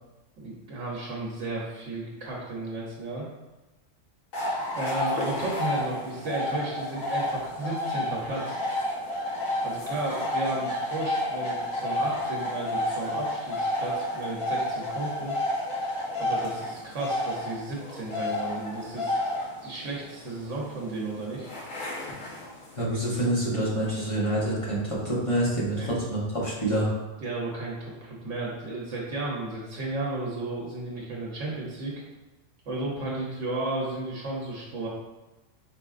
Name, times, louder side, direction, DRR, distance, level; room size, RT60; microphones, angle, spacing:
voice 1, 0.4-3.3 4.7-8.6 9.6-15.3 16.2-19.2 19.6-21.5 25.8-25.9 27.2-31.9 32.7-34.9, right 2 dB, 70° right, -4 dB, 1.2 m, -33 dB
sound 1, 4.3-22.8, left 1 dB, 90° left, 1.5 m, -31 dB
voice 2, 22.7-26.9, right 1 dB, 25° left, -8 dB, 1.3 m, -27 dB
4.9 x 4.3 x 2.4 m, 1.1 s
omnidirectional pair, 1.3 m